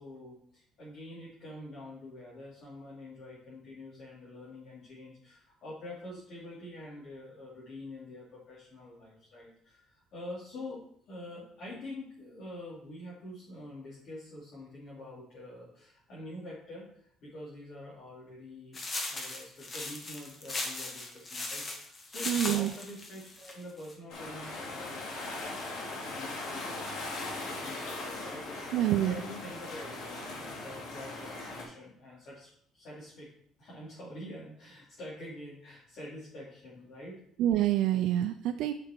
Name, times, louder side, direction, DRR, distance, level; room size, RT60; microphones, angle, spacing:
voice 1, 0.0-18.8 19.1-25.1 25.5-26.9 27.2-33.3 33.6-37.2, left 1 dB, 50° left, -8 dB, 3.3 m, -46 dB
sound 1, 18.7-23.9, left 2 dB, 25° left, 1.3 m, -38 dB
voice 2, 22.3-22.7 28.7-29.2 37.4-38.7, right 12 dB, 70° right, 6 dB, 0.5 m, -27 dB
sound 2, 24.1-31.6, left 2 dB, 75° left, 2.9 m, -39 dB
7.5 x 5.8 x 4.5 m, 0.65 s
cardioid pair, 155°, 0 cm